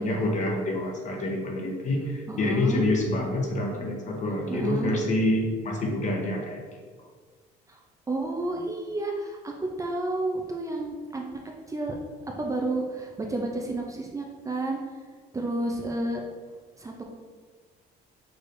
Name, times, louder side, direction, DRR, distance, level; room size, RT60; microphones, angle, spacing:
voice 1, 0.0-6.6, left 1 dB, 45° left, 1 dB, 1.0 m, -27 dB
voice 2, 2.3-2.8 4.5-4.9 7.7-7.8 8.1-11.2 11.7-12.0 12.4-14.8 15.3-16.2 16.8-17.1, right 2 dB, 20° right, 1 dB, 0.5 m, -31 dB
6.0 x 3.3 x 2.6 m, 1.5 s
cardioid pair, 110°, 17 cm